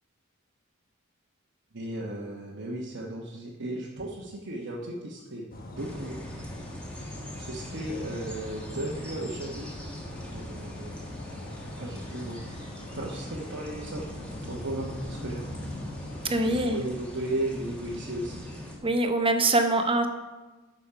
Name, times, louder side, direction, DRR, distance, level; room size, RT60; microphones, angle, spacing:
voice 1, 1.7-6.2 7.4-9.7 10.2-10.9 11.8-12.4 12.9-14.0 14.4-15.4 16.4-18.5, right 1 dB, 60° right, -4 dB, 1.1 m, -35 dB
sound 1, 5.5-16.6, left 1 dB, 45° left, 1.0 m, -43 dB
sound 2, 5.8-18.8, equal, 5° left, 1.6 m, -41 dB
voice 2, 16.2-16.8 18.8-20.1, right 2 dB, 25° right, 6 dB, 0.8 m, -24 dB
8.5 x 6.3 x 5.6 m, 1.2 s
head